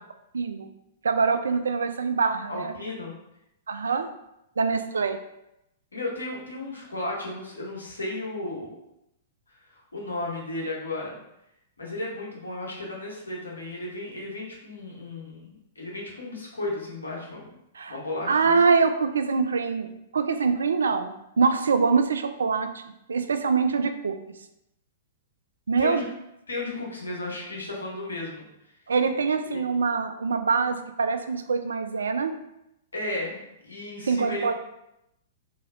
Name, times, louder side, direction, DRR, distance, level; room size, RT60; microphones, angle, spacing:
voice 1, 0.3-0.7 1.0-2.7 3.7-4.1 4.6-5.2 17.7-18.0 18.3-22.8 23.1-24.1 25.7-26.0 28.9-32.4 34.1-34.5, right 5 dB, 70° right, 9 dB, 0.3 m, -24 dB
voice 2, 2.5-3.1 5.9-8.7 9.7-11.2 11.8-17.6 17.9-18.6 25.8-26.1 26.5-28.4 29.5-29.6 32.9-34.5, left 2 dB, 80° left, -3 dB, 1.1 m, -34 dB
3.8 x 3.1 x 2.5 m, 0.83 s
figure-of-eight pair, 105°, 0 cm